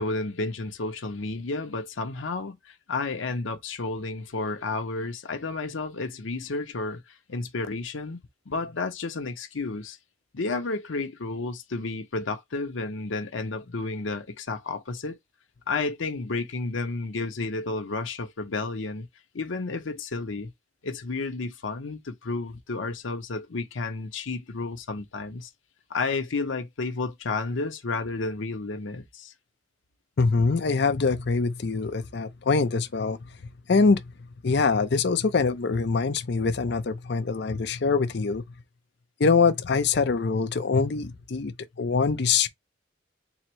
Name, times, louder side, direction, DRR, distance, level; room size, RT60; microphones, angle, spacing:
voice 1, 0.0-8.2 8.5-10.0 10.3-15.2 15.7-19.1 19.3-20.5 20.8-25.5 25.9-29.3, left 3 dB, 85° left, 0.8 m, -31 dB
voice 2, 30.2-33.2 33.7-34.0 34.4-38.4 39.2-42.5, left 4 dB, 60° left, 0.5 m, -24 dB
4.0 x 2.1 x 4.4 m
head